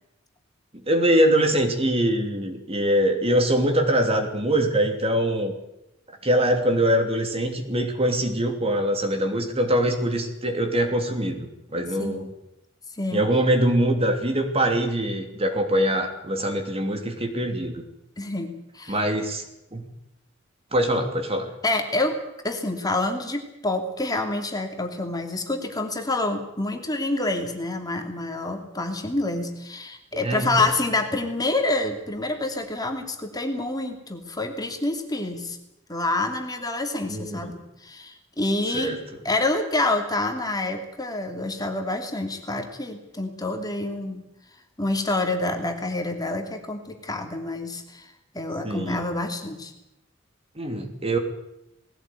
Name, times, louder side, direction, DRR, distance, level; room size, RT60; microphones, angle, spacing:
voice 1, 0.9-5.5 6.2-12.3 13.1-17.8 18.9-19.4 19.7-19.8 20.7-21.5 30.2-30.6 37.1-37.6 38.7-39.2 48.6-49.0 50.6-51.2, right 1 dB, 30° right, 5 dB, 2.9 m, -23 dB
voice 2, 18.2-19.0 21.6-22.2 22.4-35.6 35.9-39.0 39.2-44.2 44.8-49.7, left 2 dB, 20° left, 4 dB, 2.8 m, -27 dB
20.0 x 17.0 x 9.2 m, 0.88 s
head